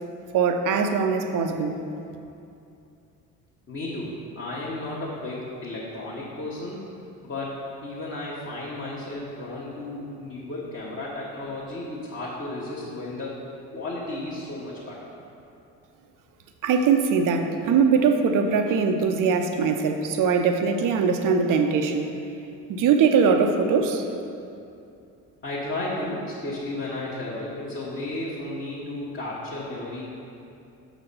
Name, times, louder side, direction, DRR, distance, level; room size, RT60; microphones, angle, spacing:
voice 1, 0.3-1.8 16.6-22.1 22.7-24.1, right 5 dB, 40° right, 6 dB, 0.6 m, -21 dB
voice 2, 3.7-6.8 7.2-13.3 13.7-15.0 25.4-30.0, left 2 dB, 25° left, -7 dB, 1.2 m, -33 dB
6.4 x 4.0 x 5.3 m, 2.6 s
figure-of-eight pair, 55°, 48 cm